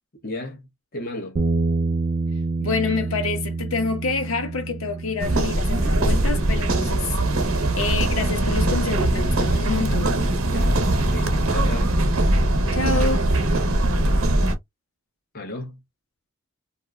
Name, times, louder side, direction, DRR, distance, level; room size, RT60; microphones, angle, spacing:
voice 1, 0.2-1.4 10.5-11.9 15.3-15.8, left 1 dB, 45° left, 0.9 m, -35 dB
Bass guitar, 1.4-7.6, right 3 dB, 35° right, 0.3 m, -28 dB
voice 2, 2.6-10.2 12.7-13.3, left 4 dB, 85° left, 0.9 m, -27 dB
sound 1, 5.2-14.5, right 1 dB, 80° right, 0.8 m, -21 dB
2.6 x 2.1 x 3.5 m
head